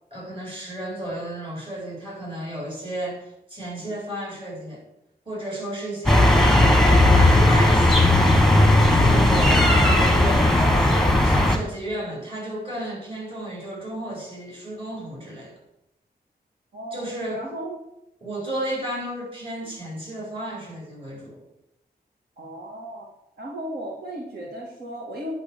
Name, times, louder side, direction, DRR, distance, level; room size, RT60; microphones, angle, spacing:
voice 1, 0.1-4.8 5.3-15.6 16.9-17.4 18.2-21.4, right 1 dB, 30° right, -3 dB, 4.4 m, -33 dB
sound 1, 6.0-11.6, left 1 dB, ahead, 1.2 m, -16 dB
voice 2, 16.7-17.1 17.3-17.8 22.4-23.1 23.4-25.3, right 1 dB, 70° right, -2 dB, 2.1 m, -35 dB
9.6 x 6.0 x 6.8 m, 0.87 s
wide cardioid pair, 160°, 17 cm